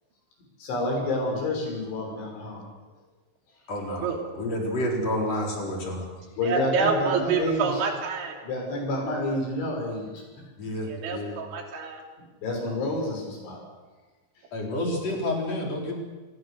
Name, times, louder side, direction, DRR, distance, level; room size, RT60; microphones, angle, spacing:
voice 1, 0.6-2.7 6.4-7.8 8.4-10.2 12.4-13.6, left 1 dB, 80° left, 1 dB, 8.5 m, -29 dB
voice 2, 3.7-6.0 10.6-11.4 14.5-16.0, left 1 dB, 35° left, 0 dB, 5.1 m, -29 dB
voice 3, 6.4-8.4 10.9-12.0, right 5 dB, 80° right, 2 dB, 5.3 m, -27 dB
27.0 x 21.0 x 6.7 m, 1.2 s
omnidirectional pair, 5.3 m